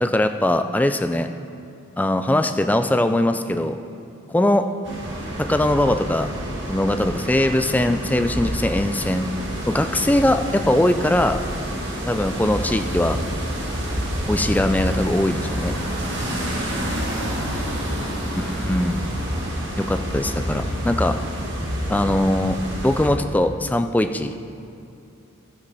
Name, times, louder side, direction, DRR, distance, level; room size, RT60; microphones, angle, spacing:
voice 1, 0.0-1.3 2.0-3.8 4.3-4.7 5.4-6.3 6.7-9.3 9.7-11.4 12.1-13.2 14.3-15.7 18.5-19.1 19.8-21.2 21.9-24.3, left 1 dB, 10° left, 8 dB, 0.3 m, -21 dB
voice 2, 4.5-4.7 9.8-10.1, left 1 dB, 35° right, -10 dB, 2.5 m, -43 dB
sound 1, 4.8-23.1, equal, 55° right, 2.0 m, -28 dB
12.0 x 9.8 x 4.1 m, 2.7 s
head